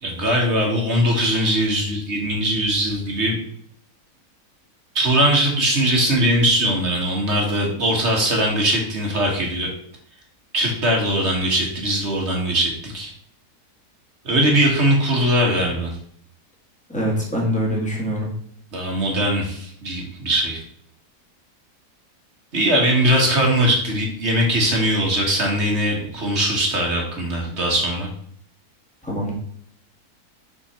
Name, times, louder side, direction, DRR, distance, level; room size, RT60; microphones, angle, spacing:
voice 1, 0.0-3.4 5.0-9.7 10.5-13.1 14.3-15.9 18.7-20.6 22.5-28.1, right 1 dB, 45° right, 0 dB, 1.9 m, -20 dB
voice 2, 16.9-18.3 29.0-29.3, equal, 5° left, -2 dB, 1.6 m, -24 dB
6.3 x 4.4 x 4.3 m, 0.65 s
omnidirectional pair, 1.6 m